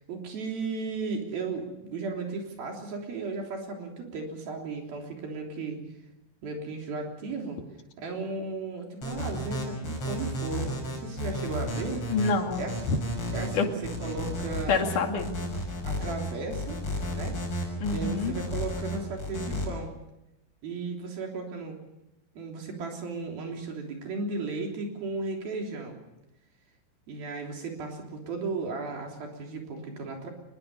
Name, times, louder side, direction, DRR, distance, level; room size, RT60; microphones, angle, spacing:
voice 1, 0.1-5.8 6.4-7.6 8.0-12.1 12.6-12.8 13.3-14.8 15.8-16.8 17.1-19.9 20.6-21.8 22.4-26.0 27.1-30.3, right 4 dB, 85° right, 1 dB, 5.3 m, -35 dB
sound 1, 9.0-19.7, left 1 dB, 35° left, 7.1 m, -33 dB
voice 2, 12.1-13.0 13.5-13.7 14.7-15.3 17.8-18.3, left 4 dB, 60° left, 3 dB, 3.7 m, -27 dB
24.0 x 21.0 x 6.8 m, 0.91 s
omnidirectional pair, 4.2 m